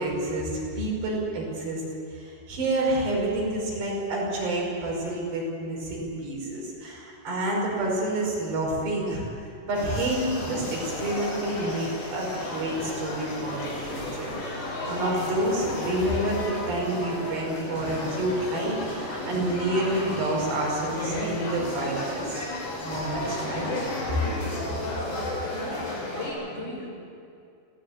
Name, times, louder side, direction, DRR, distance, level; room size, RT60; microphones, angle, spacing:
voice 1, 0.0-1.8 2.1-9.3 9.7-22.4 22.8-23.7, right 1 dB, 85° right, -2 dB, 7.4 m, -29 dB
sound 1, 9.7-26.3, left 1 dB, 90° left, 7.9 m, -33 dB
voice 2, 25.5-26.9, left 1 dB, 35° left, -4 dB, 4.1 m, -37 dB
23.5 x 17.0 x 8.8 m, 2.4 s
omnidirectional pair, 4.7 m